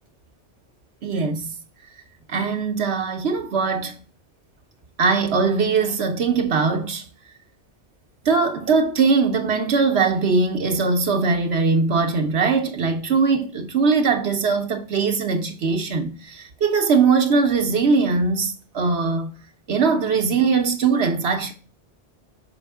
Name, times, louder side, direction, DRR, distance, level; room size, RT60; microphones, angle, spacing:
voice 1, 1.0-1.5 2.3-4.0 5.0-7.0 8.2-19.3 19.7-21.5, right 4 dB, 70° right, 1.1 m, -21 dB
6.2 x 4.5 x 3.4 m
omnidirectional pair, 1.1 m